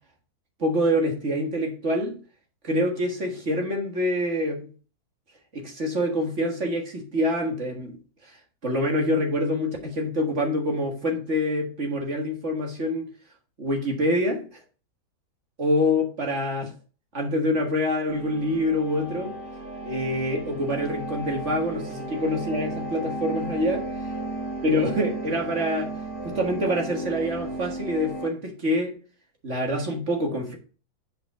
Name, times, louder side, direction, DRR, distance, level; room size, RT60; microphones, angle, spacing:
voice 1, 0.6-2.2 2.6-4.7 5.5-8.0 8.2-8.3 8.6-13.1 13.6-14.4 15.6-16.7 17.1-19.4 19.9-23.9 24.6-25.9 26.2-28.9 29.4-30.6, left 1 dB, 40° right, 1.9 m, -26 dB
sound 1, 18.1-28.3, right 2 dB, 60° right, 3.3 m, -34 dB
7.7 x 5.2 x 3.7 m
omnidirectional pair, 2.0 m